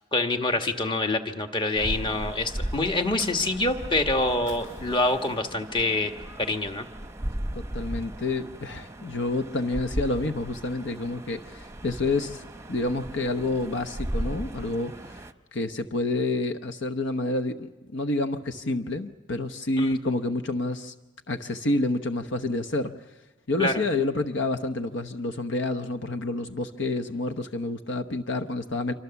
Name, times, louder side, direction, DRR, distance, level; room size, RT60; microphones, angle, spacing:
voice 1, 0.1-6.1 6.4-6.9 19.8-19.9 23.6-23.8, left 2 dB, 25° left, 5 dB, 1.5 m, -26 dB
sound 1, 1.7-15.3, right 1 dB, 15° right, 0.9 m, -36 dB
Fire, 3.2-4.1 4.3-5.7 6.1-6.2 6.6-7.6, left 2 dB, 85° left, 7.7 m, -52 dB
voice 2, 7.5-20.9 21.3-22.9 23.5-28.9, left 2 dB, 65° left, 8 dB, 0.9 m, -29 dB
27.0 x 24.5 x 7.0 m, 1.2 s
head